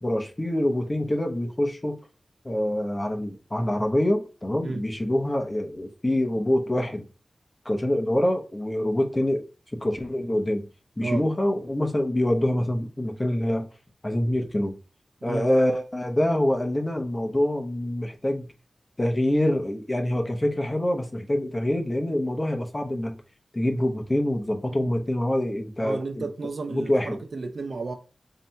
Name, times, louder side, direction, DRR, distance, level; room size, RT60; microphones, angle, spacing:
voice 1, 0.0-2.0 2.4-7.1 7.6-9.4 9.8-10.6 11.0-13.7 14.0-14.7 15.2-18.5 19.0-23.2 23.5-26.3 26.7-27.2, left 1 dB, 25° left, 0.9 m, -25 dB
voice 2, 25.8-28.0, right 3 dB, 65° right, 0.7 m, -32 dB
3.3 x 2.9 x 4.4 m
wide cardioid pair, 80°, 0 cm